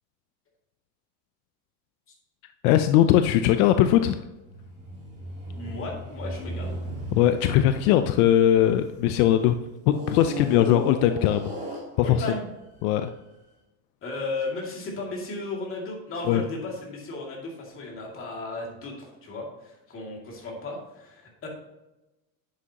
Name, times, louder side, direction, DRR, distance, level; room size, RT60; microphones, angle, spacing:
voice 1, 2.6-4.2 7.1-9.5 9.9-11.5 12.0-12.2 12.8-13.1 16.3-16.4, left 11 dB, 75° left, 9 dB, 0.6 m, -20 dB
sound 1, 4.4-9.1 9.9-12.4 13.1-13.2, equal, 15° right, 2.7 m, -36 dB
voice 2, 5.5-6.7 12.0-12.5 14.0-21.5, left 2 dB, 30° left, -1 dB, 2.3 m, -35 dB
10.5 x 7.5 x 2.9 m, 1.0 s
cardioid pair, 165°, 44 cm